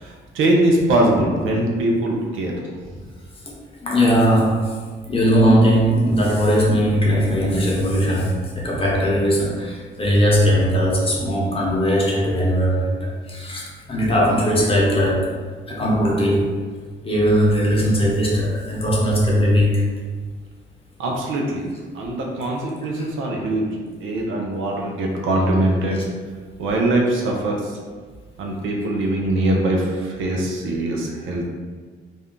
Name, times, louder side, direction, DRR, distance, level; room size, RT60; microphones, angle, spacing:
voice 1, 0.0-2.5 21.0-21.7 21.9-23.7 24.0-26.0 26.6-27.8 28.4-31.5, right 1 dB, 80° right, -1 dB, 0.6 m, -22 dB
voice 2, 3.8-4.6 5.1-15.4 15.7-16.5 17.0-19.8 23.0-23.1, equal, 30° left, -4 dB, 0.9 m, -19 dB
2.6 x 2.2 x 3.7 m, 1.5 s
cardioid pair, 90°, 20 cm